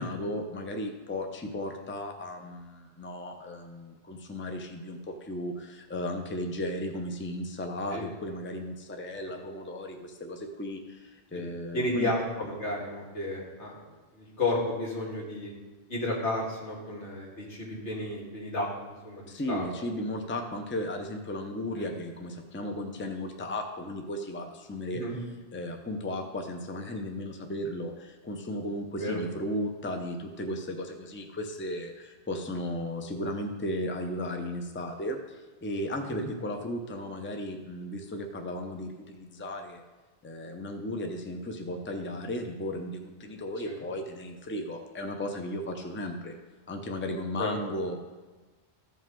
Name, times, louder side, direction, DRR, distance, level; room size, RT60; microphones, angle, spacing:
voice 1, 0.0-12.1 19.3-25.0 25.5-39.8 40.2-46.4 46.7-48.0, left 1 dB, 15° left, 4 dB, 0.6 m, -35 dB
voice 2, 11.7-13.8 14.2-15.5 15.9-18.7 19.0-19.6 21.8-21.9 24.9-25.1 29.0-29.2 36.2-36.3 43.7-43.8 47.4-47.5, left 1 dB, 90° left, -3 dB, 2.3 m, -32 dB
14.5 x 5.4 x 3.8 m, 1.3 s
omnidirectional pair, 1.1 m